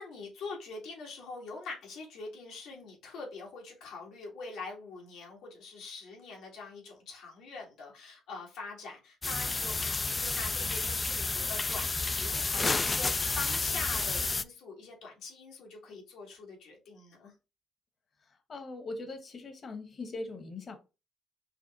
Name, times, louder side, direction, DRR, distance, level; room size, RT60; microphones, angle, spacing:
voice 1, 0.0-17.3, left 4 dB, 85° left, 1.9 m, -44 dB
sound 1, 9.2-14.4, left 3 dB, 30° left, 0.3 m, -30 dB
voice 2, 18.2-20.8, left 3 dB, 45° left, 1.2 m, -41 dB
5.6 x 2.1 x 4.1 m
cardioid pair, 90°, 0 cm